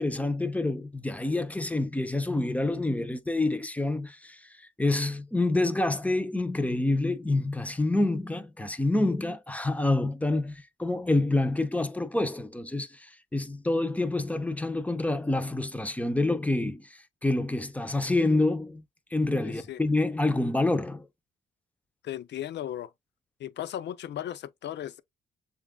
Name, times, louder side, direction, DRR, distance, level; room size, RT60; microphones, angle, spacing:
voice 1, 0.0-18.8 19.1-21.1, left 2 dB, 5° left, 0.7 m, -27 dB
voice 2, 19.4-19.8 22.0-22.9 23.4-25.0, left 11 dB, 60° left, 0.6 m, -36 dB
7.1 x 2.5 x 2.2 m
cardioid pair, 90°, 20 cm